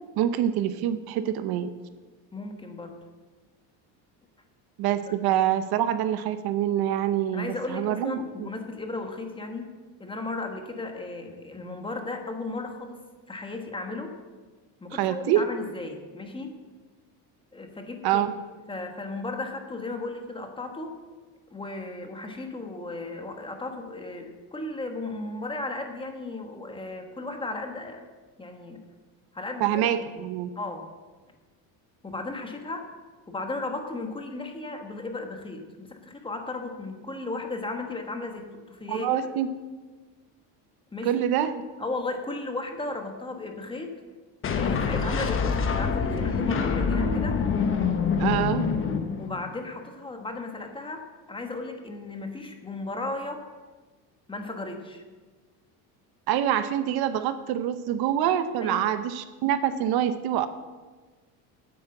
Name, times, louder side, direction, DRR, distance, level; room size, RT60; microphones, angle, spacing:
voice 1, 0.2-1.7 4.8-8.5 14.9-15.4 18.0-18.3 29.6-30.5 38.9-39.5 41.0-41.6 48.2-48.6 56.3-60.5, right 11 dB, 65° right, 12 dB, 0.8 m, -26 dB
voice 2, 2.3-3.0 5.1-5.2 7.3-9.7 10.0-13.0 13.3-14.1 14.8-16.5 17.5-18.2 18.7-21.0 21.5-28.0 28.4-28.8 29.3-29.9 30.2-30.3 30.5-30.9 32.0-32.9 33.3-39.2 40.9-41.2 41.8-44.0 44.5-47.4 49.2-53.4 54.3-55.0 58.6-58.9, left 2 dB, 10° left, 4 dB, 1.3 m, -35 dB
sound 1, 44.4-49.6, left 5 dB, 30° left, 1.1 m, -26 dB
9.6 x 8.7 x 7.7 m, 1.3 s
cardioid pair, 145°, 41 cm